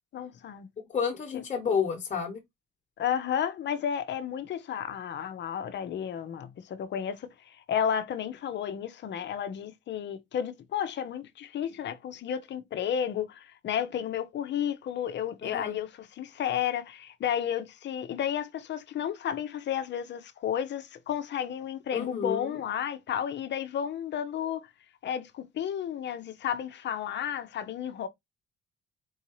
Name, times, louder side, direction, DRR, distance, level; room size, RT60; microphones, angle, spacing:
voice 1, 0.1-0.7 1.3-1.4 3.0-15.9 16.2-24.7 25.0-28.1, left 9 dB, 65° left, 0.7 m, -32 dB
voice 2, 0.9-2.4 15.4-15.8 21.9-22.6, left 6 dB, 40° left, 1.2 m, -30 dB
4.6 x 2.7 x 3.1 m
cardioid pair, 90°, 20 cm